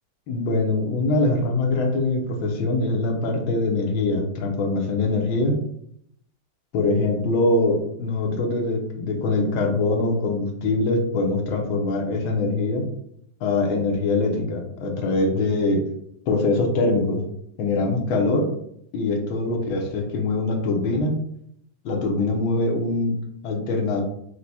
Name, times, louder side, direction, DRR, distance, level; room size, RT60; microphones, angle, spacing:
voice 1, 0.3-5.6 6.7-12.9 13.4-15.8 16.3-17.2 17.6-18.5 18.9-21.2 21.8-23.2 23.4-24.0, left 2 dB, 75° left, 2 dB, 1.6 m, -23 dB
4.8 x 2.2 x 4.1 m, 0.71 s
omnidirectional pair, 2.3 m